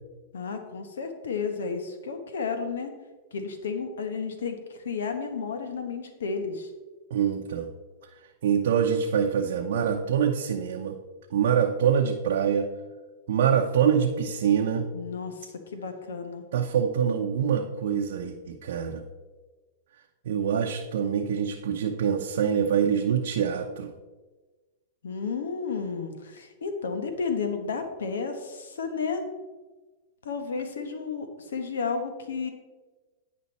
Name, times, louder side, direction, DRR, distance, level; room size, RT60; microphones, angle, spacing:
voice 1, 0.3-2.9 3.3-6.7 14.9-16.4 25.0-29.3 30.2-32.5, left 5 dB, 85° left, 7 dB, 1.1 m, -32 dB
voice 2, 7.1-7.7 8.4-10.9 11.3-12.7 13.3-14.9 16.5-19.0 20.2-23.9, right 8 dB, 75° right, 1 dB, 0.7 m, -25 dB
9.5 x 5.2 x 4.2 m, 1.3 s
hypercardioid pair, 125°, 0 cm